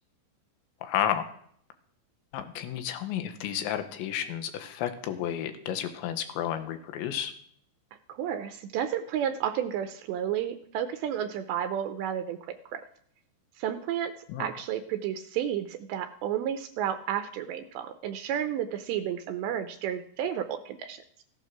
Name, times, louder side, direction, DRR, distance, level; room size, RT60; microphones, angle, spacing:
voice 1, 0.8-1.2 2.3-7.3 14.3-14.5, left 10 dB, 80° left, 8 dB, 3.3 m, -31 dB
voice 2, 8.2-12.8 13.6-14.1 14.4-21.0, right 9 dB, 80° right, 8 dB, 2.7 m, -32 dB
15.5 x 9.2 x 6.0 m, 0.64 s
omnidirectional pair, 5.4 m